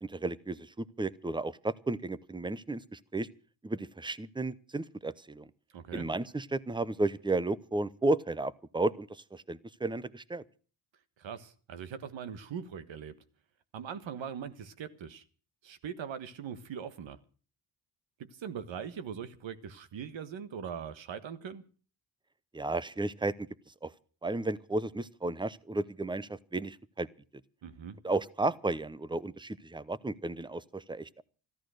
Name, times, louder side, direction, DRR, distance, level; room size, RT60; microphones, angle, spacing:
voice 1, 0.0-3.3 3.6-5.5 5.9-10.4 22.5-23.5 23.8-23.9 24.2-27.1 28.0-31.2, right 2 dB, 10° right, 0.7 m, -33 dB
voice 2, 5.7-6.1 11.2-13.2 13.7-15.2 15.6-17.2 18.3-21.7 27.6-28.0, right 7 dB, 75° right, 1.5 m, -41 dB
14.0 x 13.0 x 6.4 m
cardioid pair, 80°, 46 cm